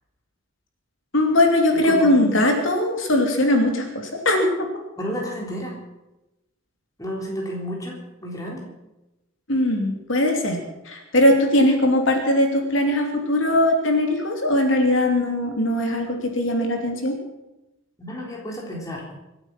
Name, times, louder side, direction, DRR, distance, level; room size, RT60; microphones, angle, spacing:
voice 1, 1.1-4.7 9.5-10.6 10.8-17.2, left 1 dB, 65° left, 2 dB, 3.0 m, -20 dB
voice 2, 1.7-2.3 5.0-5.8 7.0-8.7 18.0-19.0, equal, 15° left, -2 dB, 3.7 m, -31 dB
25.5 x 8.9 x 6.0 m, 0.95 s
head